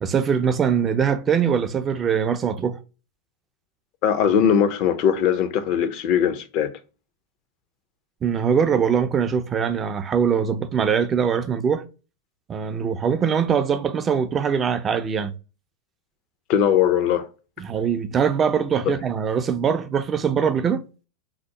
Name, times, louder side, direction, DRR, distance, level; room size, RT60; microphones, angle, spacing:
voice 1, 0.0-2.8 8.2-11.8 12.5-15.3 17.6-20.8, right 7 dB, 25° right, 0.3 m, -22 dB
voice 2, 4.0-6.7 16.5-17.3, left 8 dB, 50° left, 0.4 m, -20 dB
2.8 x 2.0 x 3.6 m
hypercardioid pair, 100°, 0 cm